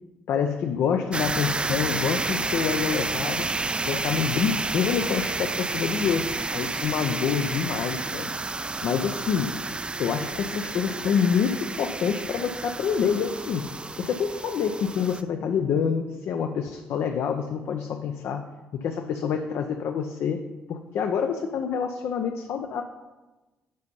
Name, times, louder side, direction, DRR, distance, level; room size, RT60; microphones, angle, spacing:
voice 1, 0.3-3.5 3.9-9.5 10.0-13.7 14.0-18.5 18.8-20.4 20.7-22.8, left 7 dB, 65° left, 5 dB, 0.5 m, -27 dB
sound 1, 1.1-15.2, right 3 dB, 20° right, 0.4 m, -30 dB
5.4 x 5.1 x 5.4 m, 1.2 s
hypercardioid pair, 45°, 5 cm